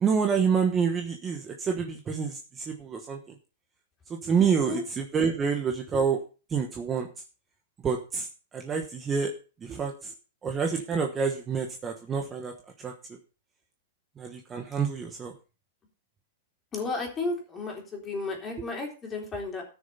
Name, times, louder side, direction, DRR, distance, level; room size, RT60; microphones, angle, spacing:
voice 1, 0.0-3.2 4.1-6.2 6.5-7.1 7.8-8.3 8.5-9.3 9.6-10.1 10.4-12.5 12.8-12.9 14.2-15.3, right 6 dB, 15° right, 3 dB, 1.1 m, -27 dB
voice 2, 4.4-4.8 16.7-19.6, left 3 dB, 15° left, 1 dB, 3.8 m, -33 dB
13.5 x 6.6 x 5.5 m, 0.34 s
supercardioid pair, 155°, 0 cm